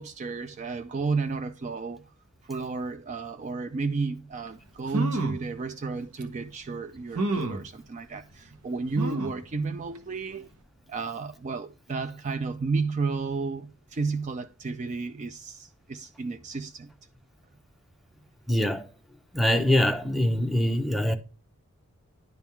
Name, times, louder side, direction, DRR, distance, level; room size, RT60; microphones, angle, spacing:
voice 1, 0.0-2.1 2.4-10.4 10.9-16.9, right 4 dB, 30° right, 0.4 m, -32 dB
sound 1, 4.5-4.6 4.9-5.5 6.2-6.3 7.1-7.7 9.0-9.4 9.9-10.0 10.3-10.4, right 1 dB, 85° right, 1.1 m, -30 dB
voice 2, 18.5-18.9 19.3-21.2, left 1 dB, ahead, 0.7 m, -23 dB
10.5 x 3.7 x 4.4 m
head